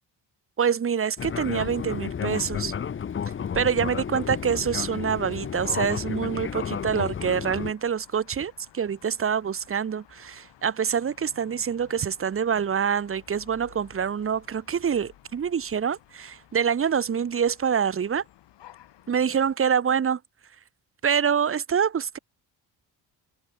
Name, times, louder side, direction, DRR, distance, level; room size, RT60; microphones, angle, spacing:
voice 1, 0.6-2.7 3.5-18.2 19.1-20.2 21.0-22.2, right 7 dB, 30° right, 1.5 m, -26 dB
Fixed-wing aircraft airplane, 1.2-7.7, left 7 dB, 30° left, 0.9 m, -32 dB
sound 1, 3.3-19.6, left 13 dB, 85° left, 7.3 m, -55 dB
cardioid pair, 155°, 41 cm